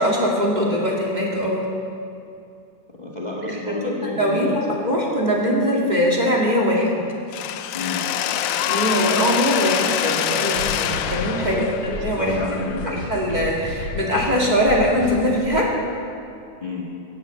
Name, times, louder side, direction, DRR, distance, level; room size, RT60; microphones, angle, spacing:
voice 1, 0.0-1.7 3.8-7.0 8.7-12.4 12.8-15.7, equal, 15° right, -2 dB, 2.0 m, -21 dB
voice 2, 3.0-4.7 7.7-8.0 11.4-13.1 16.6-16.8, left 2 dB, 40° left, -3 dB, 0.6 m, -29 dB
Mechanisms, 7.3-13.2, left 10 dB, 75° left, 1.8 m, -25 dB
sound 1, 10.6-15.6, equal, 60° right, 6.6 m, -33 dB
17.5 x 10.5 x 7.6 m, 2.5 s
omnidirectional pair, 3.7 m